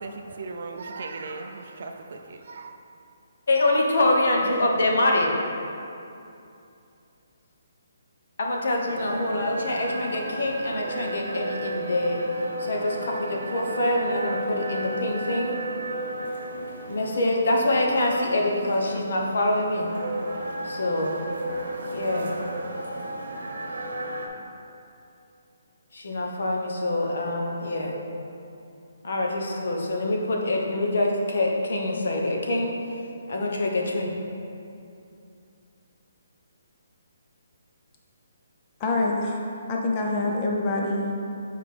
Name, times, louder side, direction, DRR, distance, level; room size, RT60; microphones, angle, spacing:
voice 1, 0.0-2.7, right 3 dB, 45° right, 0.4 m, -37 dB
voice 2, 3.5-5.4 8.4-12.2 12.6-15.6 16.9-19.9 20.6-21.2 21.9-22.4 25.9-28.0 29.0-32.7 33.3-34.1, left 1 dB, 60° left, 0.9 m, -25 dB
sound 1, 8.9-24.3, right 1 dB, 75° right, 0.9 m, -34 dB
voice 3, 38.8-39.4 39.7-41.1, left 2 dB, 20° left, 0.5 m, -25 dB
7.9 x 4.8 x 3.3 m
hypercardioid pair, 180°, 0 cm